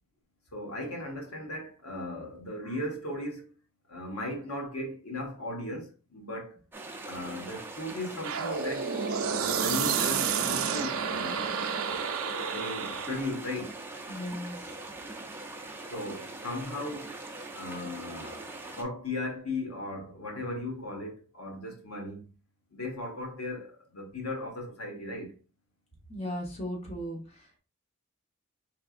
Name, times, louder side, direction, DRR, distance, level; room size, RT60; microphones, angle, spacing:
voice 1, 0.5-3.5 3.9-6.6 7.0-8.9 9.5-11.5 12.5-13.7 15.9-17.1 17.5-18.5 18.8-22.2 22.7-25.3, left 1 dB, 85° left, 1.3 m, -37 dB
sound 1, 6.7-18.8, right 2 dB, 10° right, 0.5 m, -42 dB
sound 2, 8.2-13.3, right 6 dB, 75° right, 0.5 m, -30 dB
voice 2, 14.1-14.8 26.1-27.6, equal, 30° left, 1.1 m, -37 dB
4.5 x 3.4 x 2.4 m
head